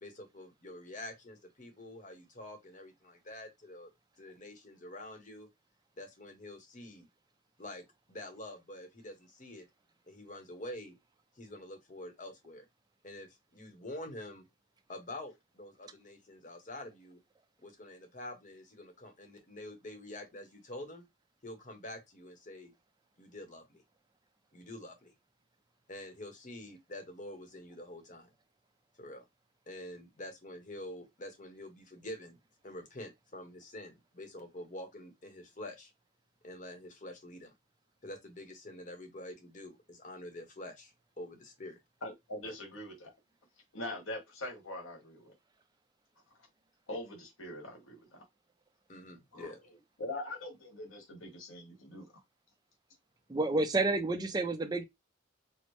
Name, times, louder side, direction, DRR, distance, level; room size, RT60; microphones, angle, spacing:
voice 1, 0.0-3.9 4.2-5.5 6.0-7.1 7.6-9.6 10.1-11.0 11.4-12.7 13.0-14.4 14.9-17.2 17.6-21.0 21.4-22.7 23.2-23.8 24.5-25.1 25.9-28.3 29.0-29.2 29.7-32.4 32.6-35.9 36.4-37.5 38.0-41.8 42.4-42.5 48.9-49.6, left 1 dB, 40° left, 0.9 m, -47 dB
voice 2, 42.0-43.1 43.7-45.3 46.9-48.2 49.3-49.5 50.0-52.1, left 1 dB, 90° left, 1.4 m, -42 dB
voice 3, 53.3-54.8, right 2 dB, 20° right, 0.4 m, -29 dB
4.3 x 2.0 x 3.1 m
head